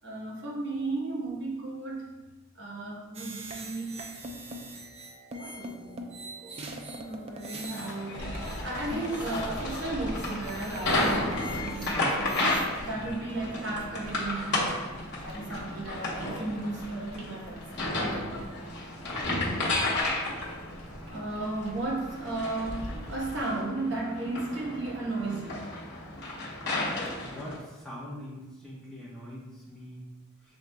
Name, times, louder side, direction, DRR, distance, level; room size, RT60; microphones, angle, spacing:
voice 1, 0.0-2.2 2.5-4.0 5.3-6.6 7.0-12.4 12.8-14.8 15.2-17.6 21.1-25.6, right 2 dB, 55° right, -4 dB, 1.1 m, -35 dB
sound 1, 3.1-12.7, right 1 dB, 30° right, 0.4 m, -42 dB
sound 2, 7.8-27.6, left 2 dB, 55° left, 1.0 m, -33 dB
sound 3, 8.2-23.4, equal, 85° right, 1.3 m, -45 dB
voice 2, 19.0-19.5 27.2-30.0, left 1 dB, 5° left, -7 dB, 0.9 m, -43 dB
6.1 x 3.9 x 2.2 m, 1.1 s
head